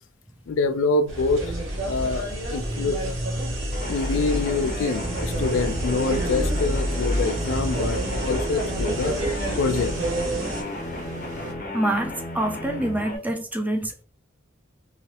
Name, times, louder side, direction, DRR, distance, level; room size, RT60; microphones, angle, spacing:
voice 1, 0.5-1.4 1.8-2.3 2.5-3.2 3.9-9.2 9.6-9.9, left 3 dB, 80° left, 0.4 m, -25 dB
sound 1, 1.1-10.6, right 1 dB, 75° right, 1.0 m, -28 dB
sound 2, 3.7-13.2, left 1 dB, 45° left, 0.7 m, -34 dB
sound 3, 5.3-11.5, right 1 dB, 40° right, 1.0 m, -39 dB
voice 2, 11.7-14.0, right 1 dB, 10° right, 0.3 m, -26 dB
2.9 x 2.8 x 2.9 m
head